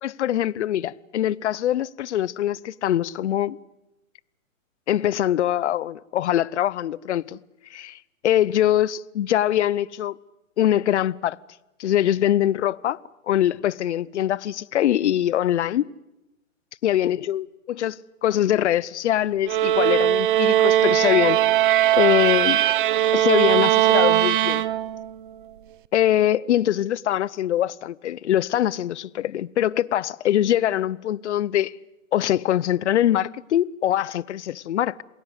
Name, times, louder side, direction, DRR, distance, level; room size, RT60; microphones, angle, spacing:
voice 1, 0.0-3.6 4.9-7.4 7.7-8.0 8.2-10.1 10.6-11.4 11.8-13.0 13.3-15.9 16.8-21.4 21.9-22.6 23.1-24.6 25.9-31.7 32.1-35.0, left 12 dB, 55° left, 0.8 m, -23 dB
sound 1, 19.5-25.1, right 13 dB, 40° right, 0.9 m, -19 dB
28.0 x 21.0 x 8.1 m
hypercardioid pair, 150°, 41 cm